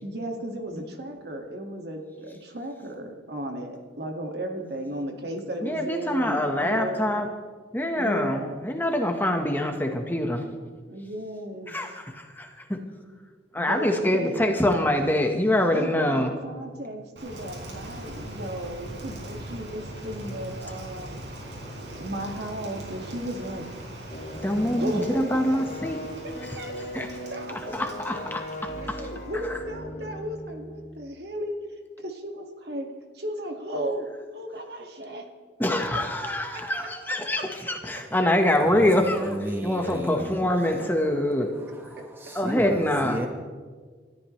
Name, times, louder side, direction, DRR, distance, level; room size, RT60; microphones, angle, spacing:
voice 1, 0.0-7.0 8.0-8.6 10.9-11.8 13.6-14.6 15.7-21.1 22.0-24.2 24.7-25.6 26.6-27.7 28.8-31.6 32.0-32.9 33.1-34.1 34.3-35.2 36.3-36.6 37.1-37.4 39.8-40.5 40.8-40.9, right 1 dB, 65° right, 2 dB, 2.1 m, -35 dB
voice 2, 5.6-7.3 7.7-10.4 11.7-12.8 13.5-16.3 24.4-26.0 26.4-26.6 26.9-27.1 27.5-29.1 29.4-29.6 35.6-41.5 42.3-43.3, left 1 dB, 10° left, 3 dB, 1.3 m, -25 dB
Rain, 17.2-29.6, right 1 dB, 85° right, 4.1 m, -40 dB
sound 1, 24.1-31.0, equal, 40° left, 1.7 m, -39 dB
voice 3, 39.1-40.4 40.8-40.9 41.7-43.3, equal, 15° right, 2 dB, 1.2 m, -33 dB
29.0 x 13.5 x 3.3 m, 1.5 s
head